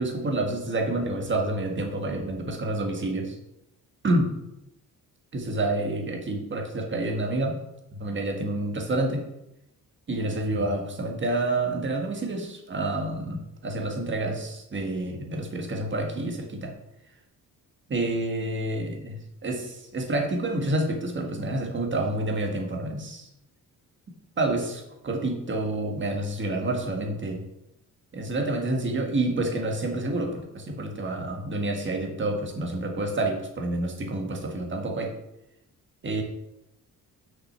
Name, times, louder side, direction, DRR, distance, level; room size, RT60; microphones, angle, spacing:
voice 1, 0.0-3.3 4.0-4.3 5.3-7.6 8.0-9.2 10.1-16.7 17.9-23.3 24.4-27.4 28.1-35.1 36.0-36.2, right 2 dB, 35° right, 2 dB, 1.6 m, -28 dB
6.4 x 6.0 x 5.7 m, 0.86 s
wide cardioid pair, 155°, 34 cm